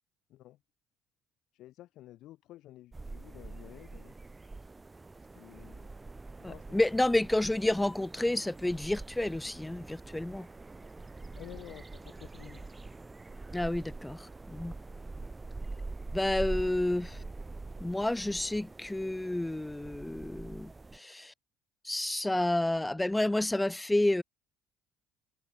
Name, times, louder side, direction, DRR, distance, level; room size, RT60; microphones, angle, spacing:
voice 1, 1.5-4.1 5.2-5.9 6.4-7.2 11.3-12.6 17.0-17.3, left 15 dB, 70° left, 7.9 m, -51 dB
sound 1, 2.9-21.0, right 3 dB, 20° right, 3.4 m, -44 dB
voice 2, 6.4-10.5 13.5-14.7 16.1-17.2 17.8-21.3 21.8-24.2, left 1 dB, 10° left, 5.5 m, -30 dB
supercardioid pair, 80°, 0 cm